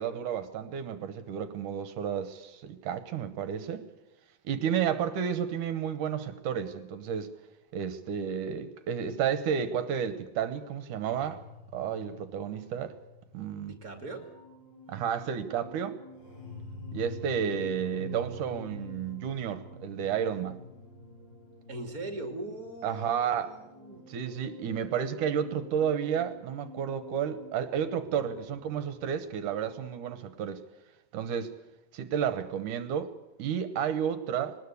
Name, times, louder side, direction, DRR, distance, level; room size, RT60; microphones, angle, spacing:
voice 1, 0.0-3.8 4.4-7.3 7.7-11.4 11.7-12.9 13.3-13.8 14.9-16.0 16.9-20.6 22.8-23.5 24.1-30.6 31.1-31.5 31.9-33.1 33.4-34.6, right 8 dB, 70° right, 11 dB, 2.4 m, -31 dB
sound 1, 11.1-29.9, left 1 dB, 30° left, 5.2 m, -48 dB
voice 2, 13.7-14.2 21.7-24.0, right 2 dB, 30° right, 5 dB, 2.5 m, -40 dB
21.5 x 19.5 x 8.3 m, 0.97 s
omnidirectional pair, 4.0 m